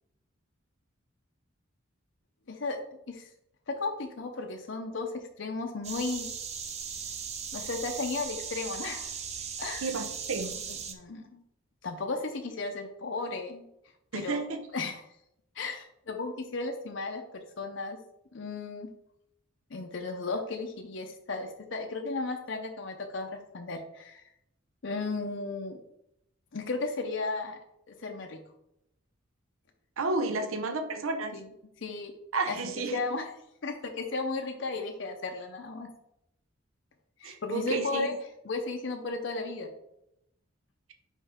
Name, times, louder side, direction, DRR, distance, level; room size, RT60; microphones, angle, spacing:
voice 1, 3.7-6.3 7.5-9.1 9.6-9.9 10.9-11.4 11.8-13.7 14.1-15.0 15.6-18.0 18.3-18.9 19.7-24.2 24.8-25.8 26.5-27.6 27.9-28.4 31.3-31.5 31.8-32.1 32.5-32.6 32.9-33.3 33.6-35.9 37.2-38.1 38.4-39.7, left 3 dB, 60° left, 3 dB, 0.6 m, -35 dB
sound 1, 5.8-10.9, right 6 dB, 30° right, 0.6 m, -38 dB
voice 2, 9.8-10.5 14.1-14.6 30.0-31.3 32.3-33.0 37.2-38.2, right 3 dB, 80° right, 6 dB, 0.7 m, -31 dB
5.4 x 5.0 x 3.6 m, 0.81 s
head